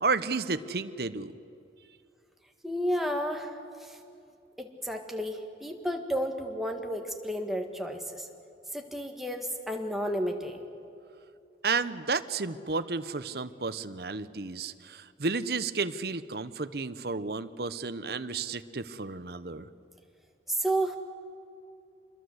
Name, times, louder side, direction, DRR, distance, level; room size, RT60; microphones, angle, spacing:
voice 1, 0.0-1.3 11.6-19.7, right 4 dB, 60° right, 12 dB, 0.9 m, -32 dB
voice 2, 2.6-4.0 4.6-8.3 8.7-10.6 20.5-21.0, equal, ahead, 3 dB, 1.8 m, -32 dB
26.5 x 21.5 x 8.0 m, 2.6 s
head